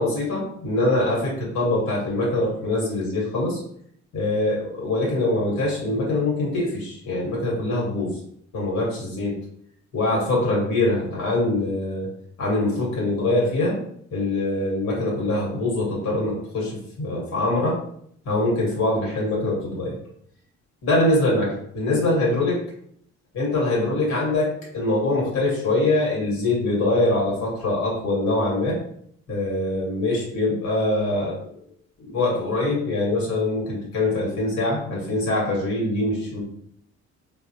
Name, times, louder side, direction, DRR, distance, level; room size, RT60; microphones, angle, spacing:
voice 1, 0.0-3.6 4.1-8.2 8.5-9.4 9.9-12.1 12.4-13.8 14.1-17.8 18.2-19.9 20.8-22.6 23.3-28.8 29.3-31.4 32.0-36.4, left 2 dB, 65° left, -4 dB, 1.5 m, -23 dB
3.9 x 2.1 x 2.8 m, 0.67 s
cardioid pair, 90°, 30 cm